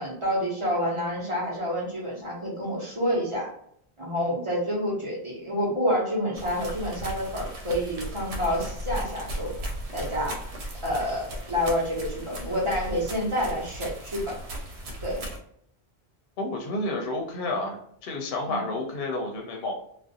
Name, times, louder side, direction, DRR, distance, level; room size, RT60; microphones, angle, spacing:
voice 1, 0.0-3.5 4.0-9.5 9.9-10.4 10.8-14.4 15.0-15.2 18.5-18.6, equal, 35° right, -5 dB, 0.7 m, -28 dB
sound 1, 6.4-15.4, right 1 dB, 85° right, 0.9 m, -36 dB
voice 2, 16.4-19.7, left 2 dB, 70° left, 2 dB, 0.7 m, -30 dB
2.4 x 2.0 x 2.6 m, 0.68 s
omnidirectional pair, 1.1 m